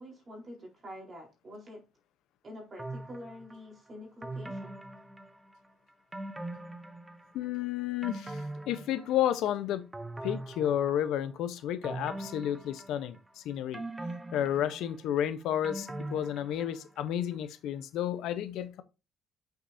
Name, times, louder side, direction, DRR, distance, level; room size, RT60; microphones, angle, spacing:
voice 1, 0.0-1.8 2.4-4.8, left 1 dB, 25° right, 4.0 m, -46 dB
sound 1, 2.8-3.6 4.2-5.7 6.1-7.4 7.8-9.5 9.9-11.3 11.8-13.3 13.7-17.0 17.3-17.4, right 2 dB, 10° right, 0.6 m, -41 dB
voice 2, 7.3-9.9 10.2-13.8 14.3-18.8, left 11 dB, 70° left, 0.8 m, -31 dB
8.3 x 6.5 x 2.7 m
cardioid pair, 150°, 0 cm